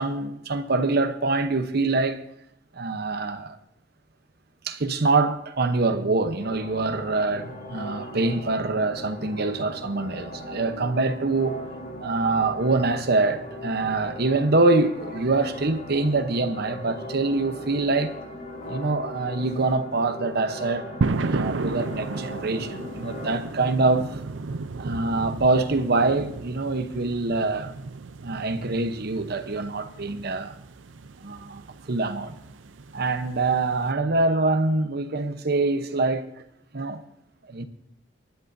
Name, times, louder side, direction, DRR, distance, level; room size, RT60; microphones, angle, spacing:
voice 1, 0.0-2.2 2.7-3.6 4.6-11.6 12.0-18.1 18.7-20.9 21.2-24.2 24.8-27.7 28.2-30.5 31.2-32.3 32.9-36.3 36.7-37.0 37.5-37.7, right 3 dB, 60° right, 0.9 m, -25 dB
sound 1, 6.4-23.4, left 1 dB, 45° left, 4.1 m, -39 dB
sound 2, 21.0-33.9, right 3 dB, 90° right, 0.6 m, -34 dB
28.0 x 10.5 x 2.7 m
head